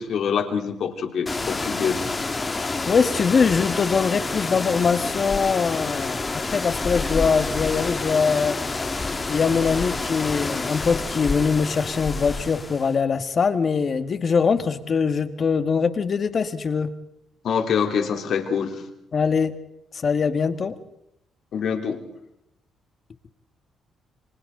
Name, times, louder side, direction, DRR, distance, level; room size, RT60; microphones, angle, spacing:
voice 1, 0.0-2.0 17.4-18.8 21.5-22.0, left 7 dB, 65° left, 4 dB, 3.6 m, -25 dB
sound 1, 1.3-12.9, left 3 dB, 25° left, 2.2 m, -28 dB
voice 2, 2.9-8.6 9.1-16.9 19.1-19.5 19.9-20.7, left 5 dB, 45° left, 10 dB, 1.8 m, -22 dB
29.5 x 24.5 x 3.9 m, 0.80 s
cardioid pair, 90°, 0 cm